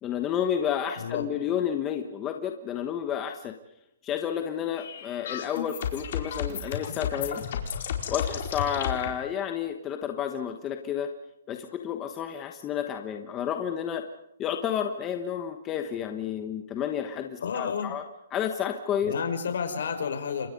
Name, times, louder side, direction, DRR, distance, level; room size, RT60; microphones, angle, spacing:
voice 1, 0.0-3.6 4.0-7.4 8.1-11.1 11.5-14.0 14.4-18.0 18.3-19.1, left 9 dB, 15° left, 5 dB, 1.1 m, -31 dB
voice 2, 1.0-1.3 17.4-17.9 19.0-20.5, left 6 dB, 60° left, 6 dB, 5.5 m, -30 dB
sound 1, 4.7-9.1, left 8 dB, 45° left, 4.6 m, -32 dB
29.5 x 26.0 x 5.3 m, 0.83 s
hypercardioid pair, 175°, 0 cm